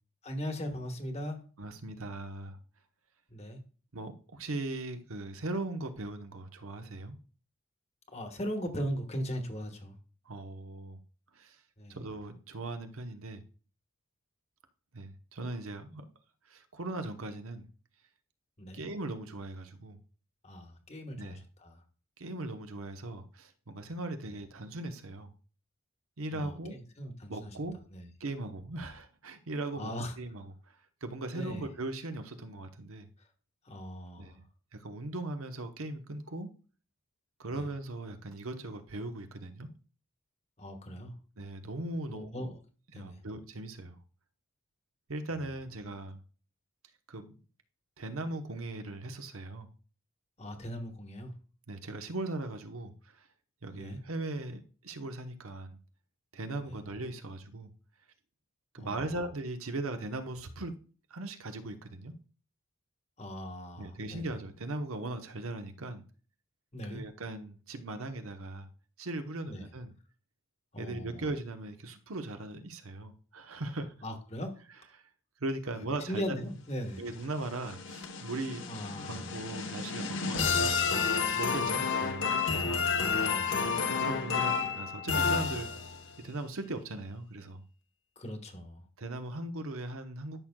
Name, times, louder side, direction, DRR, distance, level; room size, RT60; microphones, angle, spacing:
voice 1, 0.2-1.4 3.3-3.6 8.1-10.0 11.8-12.0 18.6-18.8 20.4-21.8 26.3-27.6 27.9-28.1 29.8-30.2 31.3-31.7 33.6-34.4 37.5-37.7 40.6-41.1 42.1-42.6 42.9-43.2 45.4-45.5 50.4-51.3 53.7-54.0 56.7-56.8 58.8-59.2 63.2-64.4 66.7-67.0 69.5-69.7 70.7-71.3 74.0-74.6 76.0-77.0 78.7-79.4 81.6-81.8 83.2-83.6 88.2-88.8, equal, 30° left, 5 dB, 1.2 m, -39 dB
voice 2, 1.6-2.6 3.9-7.2 10.3-11.0 11.4-11.6 11.9-13.4 14.9-16.0 16.5-17.7 18.7-20.0 21.2-21.4 22.2-25.3 26.2-26.8 27.3-27.8 28.2-29.9 30.2-30.4 31.0-33.1 34.2-34.4 34.7-36.5 37.4-39.7 41.4-42.5 42.9-44.0 45.1-46.2 47.1-47.3 48.0-49.7 51.7-52.9 53.6-55.8 56.3-57.7 58.7-60.8 61.1-62.1 63.8-66.0 66.9-68.7 69.0-69.9 70.8-73.9 75.4-76.4 77.0-80.8 81.4-82.8 84.0-85.7 86.2-87.6 89.0-90.4, right 2 dB, 80° right, 7 dB, 1.0 m, -39 dB
sound 1, 77.2-86.1, left 5 dB, 60° left, 1.0 m, -30 dB
12.5 x 6.3 x 2.3 m, 0.38 s
head